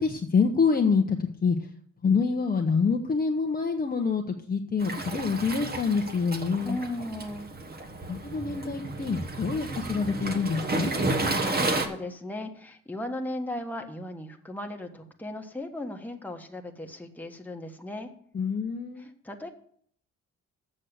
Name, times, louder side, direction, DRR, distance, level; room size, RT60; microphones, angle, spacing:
voice 1, 0.0-1.6 2.0-4.2 4.5-6.8 8.1-10.9 18.3-19.1, left 5 dB, 30° left, 3 dB, 0.9 m, -26 dB
Waves surf, 4.8-11.9, right 2 dB, 30° right, 1.4 m, -31 dB
voice 2, 6.6-7.5 11.1-18.1 19.0-19.5, left 1 dB, 5° left, 3 dB, 1.4 m, -37 dB
7.7 x 6.4 x 8.0 m, 0.63 s
cardioid pair, 90°, 30 cm